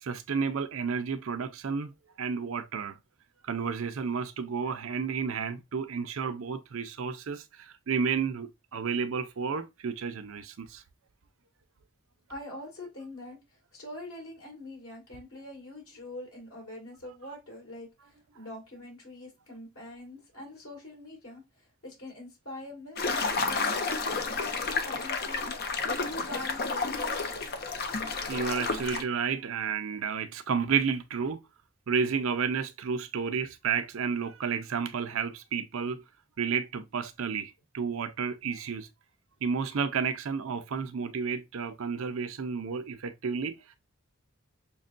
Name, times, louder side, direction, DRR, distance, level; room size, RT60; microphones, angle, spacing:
voice 1, 0.0-3.0 3.4-10.8 28.3-31.4 31.9-36.0 36.4-38.9 39.4-43.6, right 6 dB, 70° right, 0.5 m, -31 dB
voice 2, 12.3-27.3, left 1 dB, 90° left, 2.1 m, -44 dB
sound 1, 23.0-29.0, left 4 dB, 45° left, 0.5 m, -31 dB
6.1 x 2.2 x 2.4 m
head